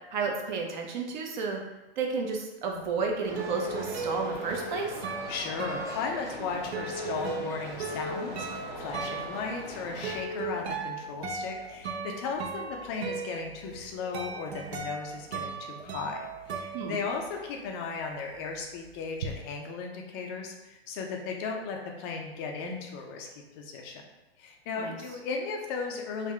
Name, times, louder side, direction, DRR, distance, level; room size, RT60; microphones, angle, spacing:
voice 1, 0.1-1.6 2.0-5.0 16.7-17.0 24.8-25.0, right 4 dB, 45° right, 2 dB, 0.7 m, -32 dB
sound 1, 2.8-17.6 17.9-19.3, right 4 dB, 75° right, 0.7 m, -37 dB
sound 2, 3.2-10.2, equal, 10° right, 1.0 m, -41 dB
voice 2, 5.3-24.0 24.4-26.3, left 4 dB, 25° left, 1 dB, 0.4 m, -36 dB
3.6 x 2.6 x 3.2 m, 1.0 s
hypercardioid pair, 135°, 32 cm